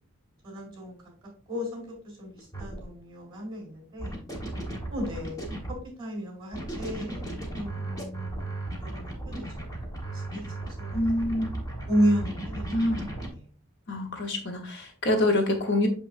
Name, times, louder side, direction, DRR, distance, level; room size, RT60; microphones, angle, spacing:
voice 1, 0.4-1.0 1.5-1.8 2.2-4.2 4.9-7.2 7.5-9.5 10.1-11.0 11.9-12.7, equal, 20° right, -1 dB, 3.4 m, -32 dB
sound 1, 2.4-2.8 4.0-5.8 6.5-13.3, right 2 dB, 15° left, 1.3 m, -35 dB
voice 2, 10.9-11.6 12.7-13.1 13.9-15.9, left 1 dB, 55° left, 4 dB, 1.0 m, -26 dB
6.7 x 5.7 x 2.6 m, 0.40 s
head